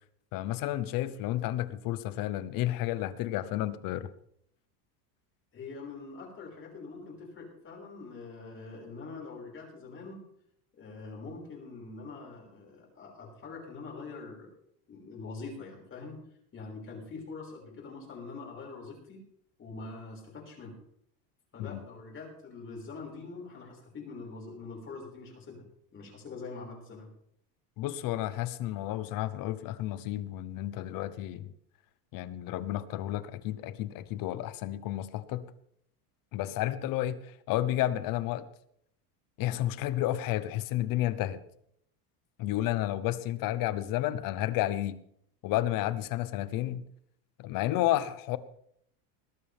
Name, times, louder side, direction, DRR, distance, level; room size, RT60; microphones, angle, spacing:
voice 1, 0.3-4.1 21.6-21.8 27.8-31.5 32.1-35.4 36.3-38.4 39.4-41.4 42.4-45.0 45.4-46.8 47.4-48.4, left 14 dB, 45° left, 15 dB, 1.0 m, -31 dB
voice 2, 5.5-10.2 10.8-14.5 14.9-16.2 16.5-19.2 19.6-20.8 21.5-25.6 25.9-27.1, left 4 dB, 25° left, -1 dB, 6.0 m, -44 dB
20.0 x 12.5 x 3.6 m, 0.69 s
supercardioid pair, 145°, 45 cm